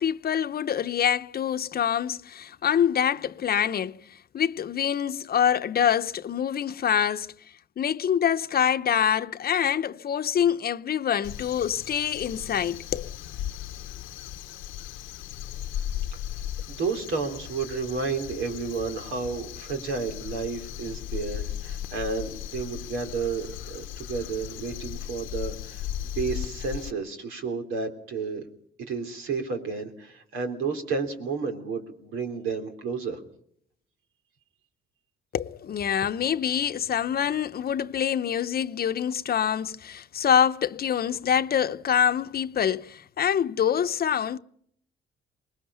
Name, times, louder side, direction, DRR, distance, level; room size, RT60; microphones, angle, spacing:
voice 1, 0.0-4.0 4.3-7.3 7.8-13.1 35.3-44.4, left 9 dB, 50° left, 0.8 m, -25 dB
Crow, 11.2-26.9, left 11 dB, 90° left, 0.8 m, -36 dB
voice 2, 16.7-25.9 26.2-28.5 28.9-33.2, right 4 dB, 90° right, 3.5 m, -31 dB
25.0 x 20.5 x 5.6 m
cardioid pair, 90°, 20 cm